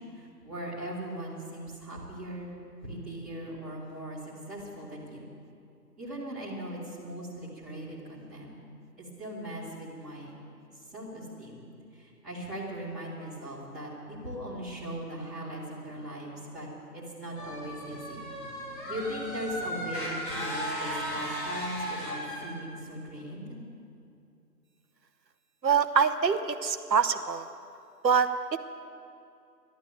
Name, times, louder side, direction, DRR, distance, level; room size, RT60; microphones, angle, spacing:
voice 1, 0.0-2.5 2.8-5.2 6.0-8.5 9.0-10.3 10.9-11.6 11.9-16.7 16.9-18.2 18.8-23.6, right 1 dB, ahead, -14 dB, 2.0 m, -39 dB
sound 1, 17.4-22.5, equal, 30° left, 4.4 m, -36 dB
voice 2, 25.6-27.5 28.0-28.6, right 6 dB, 80° right, 9 dB, 1.0 m, -25 dB
13.5 x 11.5 x 8.7 m, 2.5 s
figure-of-eight pair, 160°, 50 cm